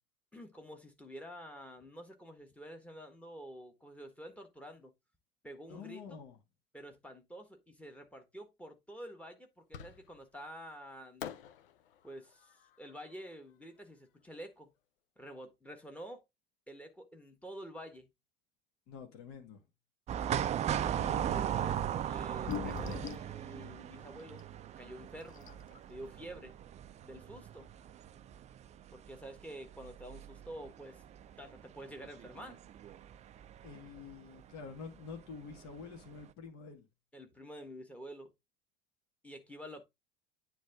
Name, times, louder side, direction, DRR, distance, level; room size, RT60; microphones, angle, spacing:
voice 1, 0.3-4.9 5.4-6.2 6.7-11.3 12.0-12.5 12.8-14.7 15.2-16.2 16.7-18.1 20.7-25.5 25.9-26.6 27.0-27.7 28.9-31.0 31.4-32.6 37.1-38.3 39.2-39.8, equal, 5° left, 1.5 m, -49 dB
voice 2, 5.7-6.4 18.9-19.6 33.6-36.9, left 5 dB, 50° left, 2.0 m, -48 dB
Fireworks, 9.7-10.4 11.2-14.3, left 9 dB, 65° left, 0.8 m, -49 dB
sound 1, 20.1-34.1 34.4-34.5 35.5-35.8 36.2-36.3, right 10 dB, 25° right, 0.4 m, -38 dB
sound 2, 21.9-22.0 22.3-23.3 24.4-24.5 25.0-25.1 25.3-25.8, left 10 dB, 30° left, 0.6 m, -40 dB
9.3 x 3.5 x 3.5 m
figure-of-eight pair, 75°, 29 cm